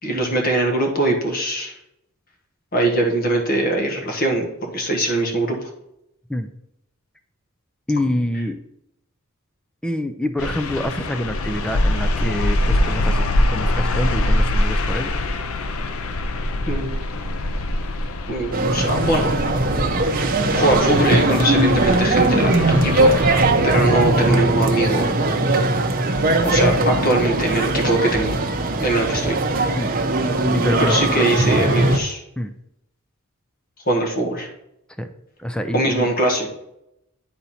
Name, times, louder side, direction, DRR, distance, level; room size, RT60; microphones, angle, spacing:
voice 1, 0.0-1.8 2.7-5.7 16.7-16.9 18.3-19.3 20.5-23.1 23.6-25.2 26.4-28.4 28.8-29.4 30.8-32.2 33.8-34.5 35.7-36.5, right 1 dB, 45° left, 1 dB, 1.5 m, -21 dB
voice 2, 7.9-8.6 9.8-13.3 13.5-15.1 29.8-29.9 30.5-31.3 32.4-32.5 35.0-35.1 35.4-36.1, left 1 dB, 5° left, 8 dB, 0.4 m, -26 dB
sound 1, 10.4-23.5, left 1 dB, 90° left, 0.6 m, -24 dB
sound 2, 18.5-32.0, right 2 dB, 45° right, 0.7 m, -19 dB
10.0 x 4.1 x 4.2 m, 0.82 s
head